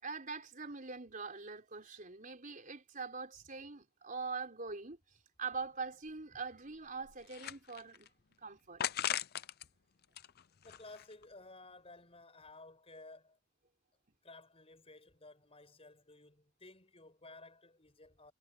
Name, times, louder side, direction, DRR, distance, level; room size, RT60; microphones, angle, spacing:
voice 1, 0.0-5.0 5.4-8.1 8.4-8.8, right 4 dB, 35° right, 4.3 m, -43 dB
sound 1, 5.6-5.7 6.1-6.2 6.7-8.1 8.8-9.7 10.0-11.2, left 10 dB, 45° left, 0.6 m, -39 dB
voice 2, 10.6-13.4 14.2-18.3, left 2 dB, 25° left, 6.9 m, -55 dB
head